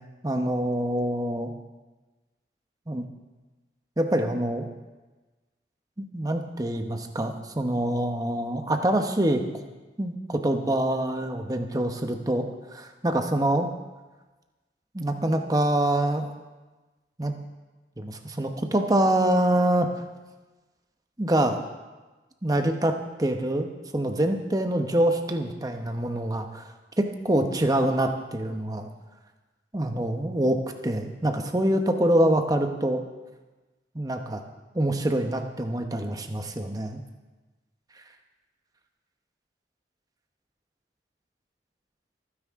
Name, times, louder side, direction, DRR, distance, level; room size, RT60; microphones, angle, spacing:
voice 1, 0.2-1.5 2.9-3.0 4.0-4.7 6.1-9.6 10.0-13.7 14.9-16.3 17.2-17.3 18.0-19.9 21.2-21.6 22.4-23.7 23.9-26.7 27.0-28.9 29.7-30.6 30.8-33.0 33.9-34.4 34.7-37.0, right 1 dB, 20° right, 5 dB, 1.0 m, -25 dB
27.0 x 9.7 x 3.7 m, 1.2 s
head